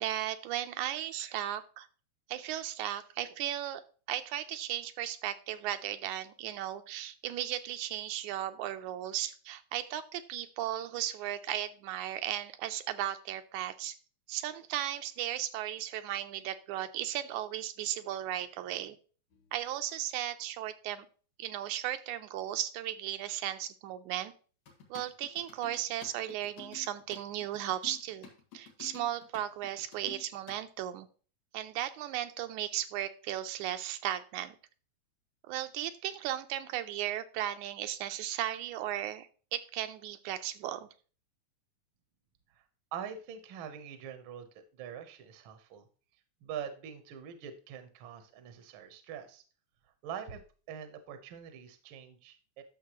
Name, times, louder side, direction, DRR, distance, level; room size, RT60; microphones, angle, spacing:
voice 1, 0.0-1.9 2.3-3.8 4.1-14.0 14.3-19.0 19.5-21.1 21.4-24.3 24.9-28.3 28.5-31.1 31.5-34.6 35.5-40.9, right 12 dB, 80° right, 9 dB, 2.0 m, -36 dB
sound 1, 19.3-19.7 24.7-30.8, left 7 dB, 85° left, 3.4 m, -52 dB
voice 2, 42.9-44.5 44.7-45.9 46.4-49.4 50.0-50.4 50.7-52.6, right 8 dB, 65° right, 8 dB, 1.3 m, -44 dB
11.0 x 6.7 x 3.0 m, 0.38 s
omnidirectional pair, 3.5 m